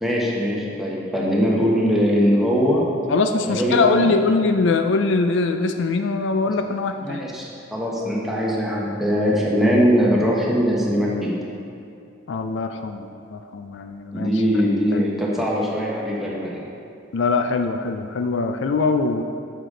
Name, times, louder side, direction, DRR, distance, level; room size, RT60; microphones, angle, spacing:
voice 1, 0.0-2.8 3.4-4.1 7.0-7.4 7.7-11.3 14.1-16.6, equal, ahead, -5 dB, 1.2 m, -21 dB
voice 2, 3.1-7.2 12.3-14.3 14.9-15.0 17.1-19.2, left 3 dB, 65° left, 7 dB, 0.4 m, -22 dB
9.0 x 6.6 x 3.9 m, 2.6 s
head